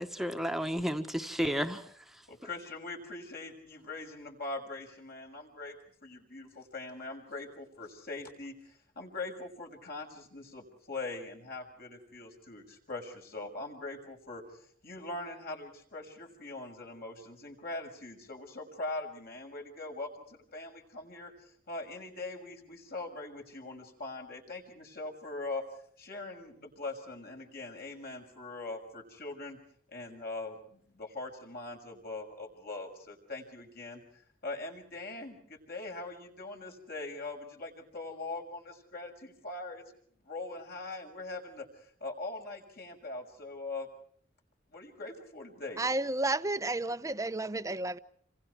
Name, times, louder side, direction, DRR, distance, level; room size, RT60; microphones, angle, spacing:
voice 1, 0.0-2.2, equal, ahead, 1.5 m, -33 dB
voice 2, 2.3-5.8 6.0-25.6 26.0-29.6 29.9-39.8 40.2-43.9 44.7-45.8, left 2 dB, 55° left, 6.4 m, -42 dB
voice 3, 45.8-48.0, right 2 dB, 20° right, 0.9 m, -31 dB
28.5 x 26.5 x 4.8 m
head